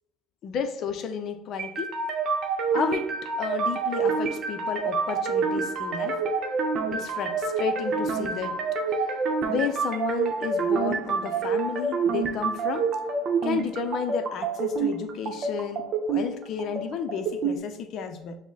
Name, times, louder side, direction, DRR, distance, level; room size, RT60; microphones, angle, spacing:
voice 1, 0.4-2.0 2.7-3.1 3.4-6.2 6.9-8.6 9.5-12.9 13.4-15.8 16.1-18.4, left 6 dB, 55° left, 8 dB, 0.6 m, -32 dB
sound 1, 1.6-17.6, right 4 dB, 50° right, 0.7 m, -27 dB
6.0 x 2.1 x 3.9 m, 0.79 s
supercardioid pair, 90°, 0 cm